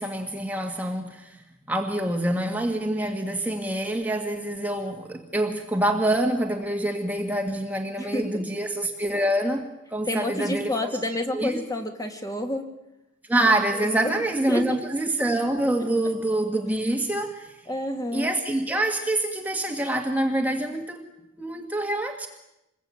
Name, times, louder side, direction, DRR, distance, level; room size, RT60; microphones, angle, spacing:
voice 1, 0.0-9.6 9.9-10.9 11.3-11.6 13.3-17.6 18.1-21.0 21.4-22.3, right 1 dB, 10° right, 3 dB, 1.8 m, -26 dB
voice 2, 8.0-8.5 10.1-12.7 13.8-14.2 14.5-14.7 17.7-18.3, left 1 dB, 15° left, 5 dB, 2.4 m, -29 dB
27.0 x 22.0 x 9.0 m, 0.89 s
head